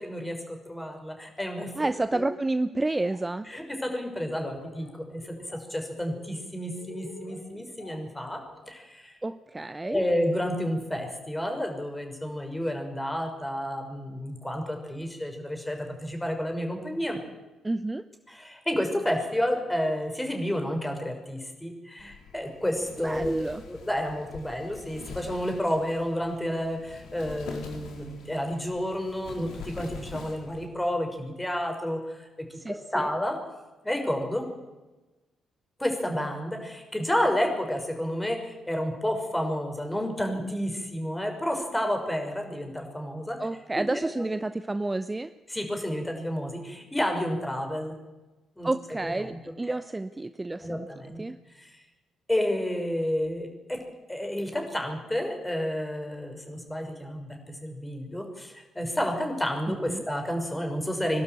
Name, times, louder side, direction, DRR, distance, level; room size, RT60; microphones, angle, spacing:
voice 1, 0.0-2.3 3.5-5.4 5.7-8.4 8.7-9.1 9.8-17.2 18.3-32.2 32.5-33.4 33.8-34.5 35.8-43.4 43.7-43.9 44.1-44.2 45.5-47.9 48.6-48.7 49.2-49.4 49.7-49.8 50.6-51.2 51.6-51.7 52.3-53.8 54.1-61.2, equal, 10° left, 3 dB, 5.9 m, -30 dB
voice 2, 1.8-3.5 9.2-10.0 17.6-18.0 23.0-23.6 32.5-33.1 43.4-45.3 48.6-50.9 51.2-51.4 59.7-60.1, right 2 dB, 20° right, 13 dB, 0.8 m, -30 dB
Laughter, 2.7-3.2 3.5-4.9 5.2-5.6 5.9-8.8, left 4 dB, 80° left, 4.0 m, -49 dB
Wind, 22.0-30.7, left 5 dB, 65° left, 3.7 m, -44 dB
23.5 x 12.0 x 9.4 m, 1.1 s
figure-of-eight pair, 45°, 0 cm